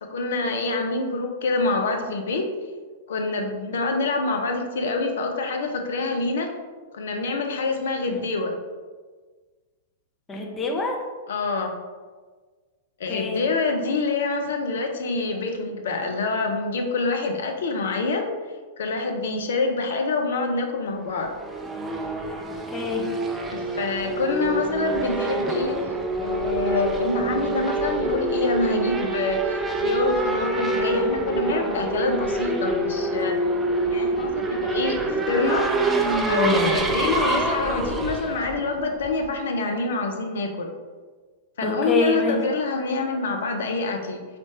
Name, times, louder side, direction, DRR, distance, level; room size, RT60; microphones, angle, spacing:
voice 1, 0.0-2.5 3.1-6.5 6.9-8.6 11.3-11.8 13.0-18.3 18.8-21.3 23.5-25.8 26.2-33.4 33.9-35.7 36.3-40.7 41.6-44.3, left 3 dB, 60° left, 4 dB, 0.6 m, -26 dB
voice 2, 10.3-10.9 13.1-13.4 22.7-23.1 41.6-42.4, left 2 dB, 20° left, 0 dB, 0.8 m, -26 dB
Race car auto racing / Accelerating revving vroom, 21.1-39.3, right 2 dB, 15° right, 0.4 m, -26 dB
4.2 x 3.3 x 2.9 m, 1.4 s
figure-of-eight pair, 100°, 0 cm